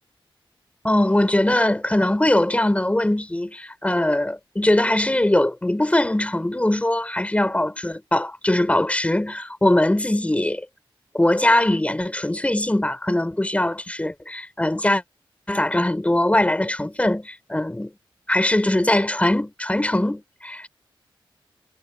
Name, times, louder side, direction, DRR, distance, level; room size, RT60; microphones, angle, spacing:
voice 1, 0.8-10.6 11.1-15.0 15.5-17.9 18.3-20.7, left 1 dB, 15° left, 6.4 m, -21 dB
wide cardioid pair, 75°, 9 cm